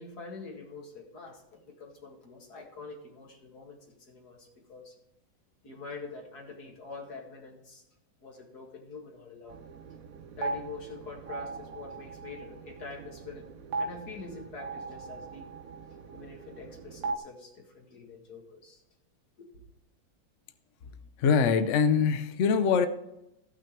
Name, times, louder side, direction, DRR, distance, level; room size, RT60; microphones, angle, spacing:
voice 1, 0.0-5.0 5.6-7.8 8.2-9.6 10.4-13.5 13.8-15.5 16.1-18.8 19.4-19.5, left 4 dB, 55° left, 0 dB, 2.4 m, -45 dB
sound 1, 9.5-17.2, right 3 dB, 60° right, 1.0 m, -39 dB
voice 2, 21.2-22.9, left 6 dB, 75° left, 10 dB, 0.6 m, -23 dB
15.0 x 6.1 x 4.5 m, 0.87 s
omnidirectional pair, 2.1 m